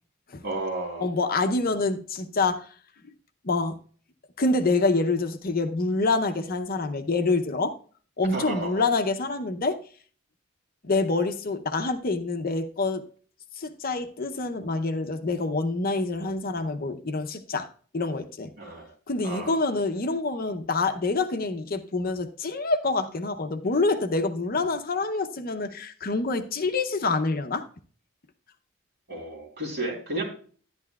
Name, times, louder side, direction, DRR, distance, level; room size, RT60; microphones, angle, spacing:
voice 1, 0.4-1.0 8.3-8.8 18.6-18.9 19.2-19.6 29.1-30.2, right 2 dB, 50° right, -1 dB, 3.4 m, -32 dB
voice 2, 1.0-2.7 3.4-3.8 4.4-7.7 8.2-9.8 10.8-13.0 13.6-17.7 17.9-18.5 19.1-27.6, left 3 dB, 45° left, 8 dB, 0.7 m, -26 dB
11.0 x 11.0 x 2.3 m, 0.43 s
head